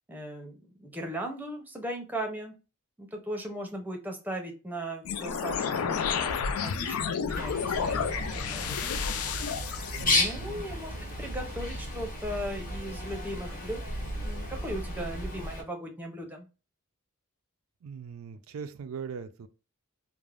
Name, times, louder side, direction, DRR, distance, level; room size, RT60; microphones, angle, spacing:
voice 1, 0.1-2.5 3.0-9.1 10.0-10.9 11.2-13.8 14.2-16.5, right 1 dB, 10° right, 0.5 m, -38 dB
sound 1, 5.0-10.0, left 6 dB, 80° left, 0.4 m, -31 dB
Bird, 7.3-15.6, left 1 dB, 40° left, 0.8 m, -33 dB
voice 2, 9.9-10.6 17.8-19.5, right 6 dB, 75° right, 0.4 m, -40 dB
3.2 x 2.0 x 2.4 m
head